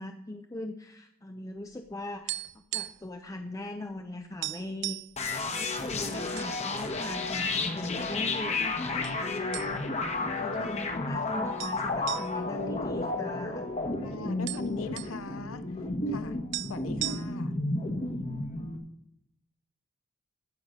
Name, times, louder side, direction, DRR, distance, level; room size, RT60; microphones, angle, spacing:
voice 1, 0.0-2.4 2.7-5.0 5.5-13.6, left 1 dB, 15° left, 6 dB, 0.5 m, -40 dB
sound 1, 1.7-3.2 3.4-3.6 4.0-4.1 4.4-5.2 5.8-6.5 6.9-7.0 7.7-8.3 9.0-9.2 9.5-10.1 10.4-10.5 11.6-13.7 14.0-14.1 14.2-15.2 16.2-16.3 16.5-17.6, right 16 dB, 55° right, 0.3 m, -37 dB
sound 2, 5.2-18.8, left 2 dB, 30° left, 1.2 m, -32 dB
voice 2, 10.5-10.9 14.0-15.6 16.1-16.4 16.7-17.5, left 4 dB, 75° left, 12 dB, 0.7 m, -40 dB
14.5 x 5.6 x 6.3 m, 0.78 s
head